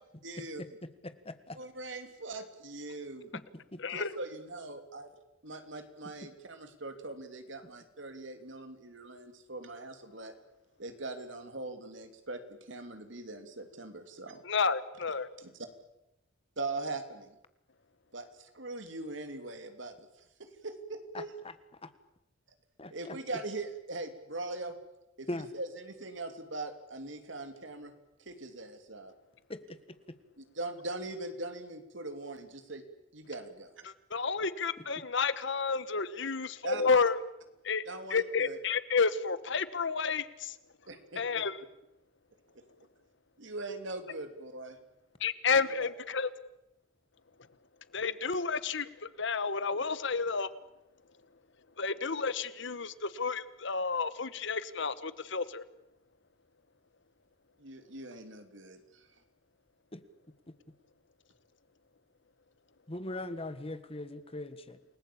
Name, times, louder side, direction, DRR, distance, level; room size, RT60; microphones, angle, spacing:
voice 1, 0.2-0.6 1.5-3.3 3.9-5.1 5.4-10.3 10.8-14.4 15.4-15.5 16.6-17.3 18.1-19.9 20.4-21.4 22.9-24.7 25.2-27.9 28.2-29.1 30.4-32.8 33.1-33.7 36.6-36.8 37.8-38.6 40.9-41.2 43.4-44.8 45.5-45.9 57.6-59.1, right 2 dB, 65° right, 8 dB, 3.0 m, -41 dB
voice 2, 0.8-1.6 3.3-3.4 3.7-3.8 21.1-21.5 21.8-21.9 22.8-23.2 25.3-25.5 29.5-29.6 59.9-60.0 60.5-60.6 62.9-64.8, left 1 dB, 30° left, 12 dB, 1.6 m, -40 dB
voice 3, 3.8-4.1 14.4-15.3 33.8-37.2 37.6-37.8 38.1-40.6 41.2-41.6 45.2-46.3 47.9-50.5 51.8-55.6, left 5 dB, 60° left, 15 dB, 1.2 m, -31 dB
29.0 x 19.5 x 8.7 m, 0.88 s
head